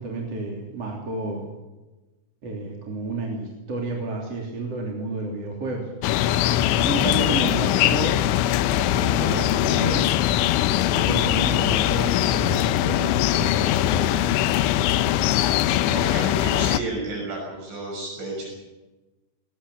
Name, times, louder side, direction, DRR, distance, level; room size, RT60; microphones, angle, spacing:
voice 1, 0.0-1.4 2.4-5.9 6.8-8.2 8.7-10.1 11.0-14.3, right 2 dB, 35° right, -1 dB, 3.8 m, -31 dB
sound 1, 6.0-16.8, left 13 dB, 85° left, 3.2 m, -21 dB
voice 2, 15.9-18.5, right 2 dB, 70° right, -1 dB, 8.5 m, -32 dB
21.5 x 19.0 x 7.2 m, 1.1 s
omnidirectional pair, 5.4 m